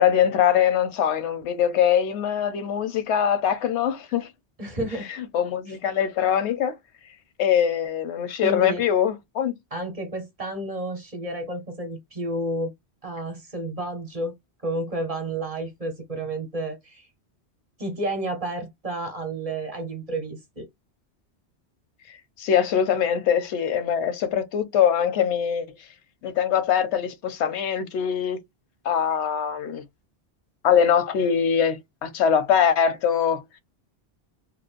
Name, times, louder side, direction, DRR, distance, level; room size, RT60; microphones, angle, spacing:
voice 1, 0.0-4.3 5.2-6.8 7.4-9.5 22.4-25.7 26.2-28.4 28.8-29.8 30.6-33.4, left 8 dB, 85° left, 0.9 m, -22 dB
voice 2, 4.6-5.1 5.7-5.8 8.4-8.8 9.7-12.7 13.0-14.3 14.6-17.1 17.8-20.7, right 1 dB, 35° right, 0.8 m, -31 dB
3.1 x 2.0 x 2.4 m
omnidirectional pair, 1.1 m